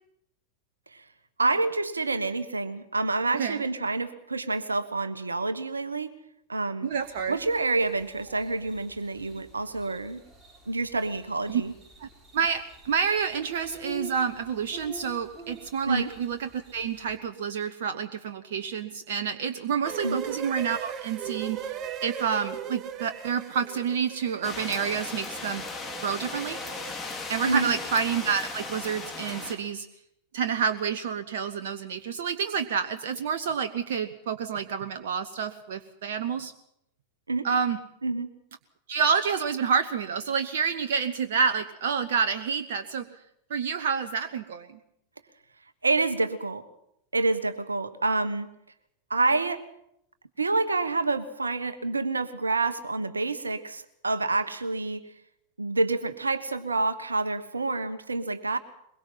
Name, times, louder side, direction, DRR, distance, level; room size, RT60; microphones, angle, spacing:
voice 1, 1.4-6.1 6.5-6.9 7.3-10.2 10.7-11.7 15.9-16.1 20.0-20.2 27.4-27.7 37.3-37.5 38.0-38.3 45.8-46.6 47.1-48.5 49.1-49.6 50.4-55.0 55.6-58.6, right 3 dB, 80° right, 12 dB, 1.3 m, -28 dB
voice 2, 6.8-7.4 11.5-11.6 12.0-25.6 26.0-26.6 27.3-29.9 30.3-36.5 37.4-37.8 38.9-43.1 43.5-44.7, right 6 dB, 55° right, 8 dB, 1.0 m, -28 dB
sound 1, 6.9-17.2, right 2 dB, 10° right, 5.2 m, -49 dB
sound 2, 19.8-26.9, right 9 dB, 30° right, 1.2 m, -38 dB
sound 3, 24.4-29.5, left 4 dB, 15° left, 3.2 m, -37 dB
22.5 x 22.0 x 5.8 m, 0.77 s
figure-of-eight pair, 90°, 0 cm